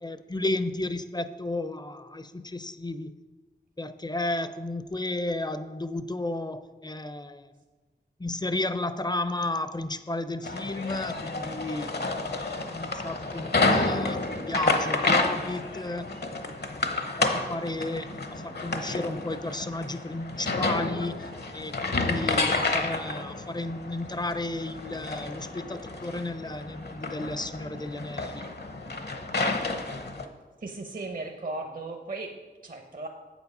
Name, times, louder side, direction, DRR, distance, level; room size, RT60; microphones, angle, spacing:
voice 1, 0.0-3.1 3.8-7.5 8.2-11.9 12.2-16.1 16.4-16.9 17.2-28.5, left 2 dB, 20° left, 12 dB, 0.5 m, -33 dB
sound 1, 10.4-30.3, left 3 dB, 60° left, 0.9 m, -30 dB
voice 2, 30.6-33.1, right 2 dB, 50° right, 3 dB, 0.7 m, -37 dB
7.5 x 7.1 x 5.4 m, 1.3 s
wide cardioid pair, 45°, 19 cm